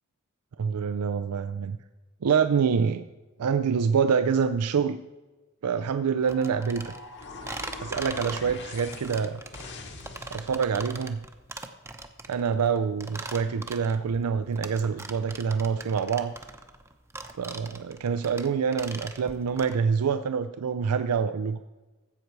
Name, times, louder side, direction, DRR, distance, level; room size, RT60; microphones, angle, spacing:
voice 1, 0.6-1.8 2.2-3.0 3.4-5.0 5.6-6.9 7.8-9.4 10.3-11.2 12.3-16.3 17.4-21.6, right 6 dB, 90° right, 10 dB, 0.4 m, -26 dB
sound 1, 6.3-10.8, left 3 dB, 55° left, 1.3 m, -43 dB
sound 2, 6.3-19.8, right 2 dB, 10° right, 0.7 m, -41 dB
13.5 x 8.0 x 4.6 m, 1.2 s
head